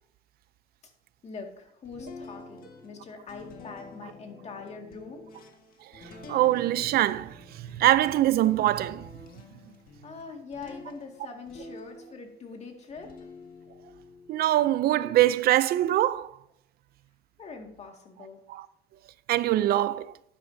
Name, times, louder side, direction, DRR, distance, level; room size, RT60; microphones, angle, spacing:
voice 1, 1.2-5.3 10.0-13.3 17.4-18.4, left 4 dB, 40° left, 2.0 m, -43 dB
sound 1, 1.9-12.4 12.9-15.2, left 3 dB, 60° left, 1.7 m, -48 dB
voice 2, 6.3-7.3 7.8-9.0 14.3-16.3 18.5-18.6 19.3-20.1, right 14 dB, 65° right, 0.5 m, -23 dB
12.5 x 9.8 x 2.7 m
cardioid pair, 110°, 17 cm